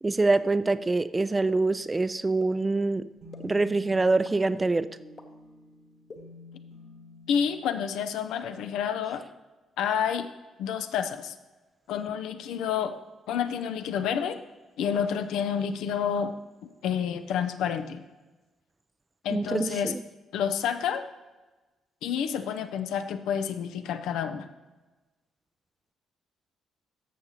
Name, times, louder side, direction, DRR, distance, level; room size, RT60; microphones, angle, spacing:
voice 1, 0.0-3.1 3.4-4.9 19.3-20.0, right 3 dB, 20° right, 15 dB, 0.4 m, -25 dB
sound 1, 1.5-1.6 2.4-2.5 3.3-3.4 4.2-4.3 5.2-5.3 6.1-6.2, left 4 dB, 40° left, 1.1 m, -44 dB
sound 2, 3.2-7.5, left 3 dB, 60° right, 1.3 m, -49 dB
voice 2, 7.3-9.2 9.8-10.3 10.6-11.3 11.9-13.0 13.3-14.4 14.8-16.3 16.8-18.0 19.2-19.9 20.3-21.0 22.0-24.5, left 8 dB, 65° left, 9 dB, 0.5 m, -29 dB
13.5 x 6.7 x 2.9 m, 1.2 s
figure-of-eight pair, 40°, 0 cm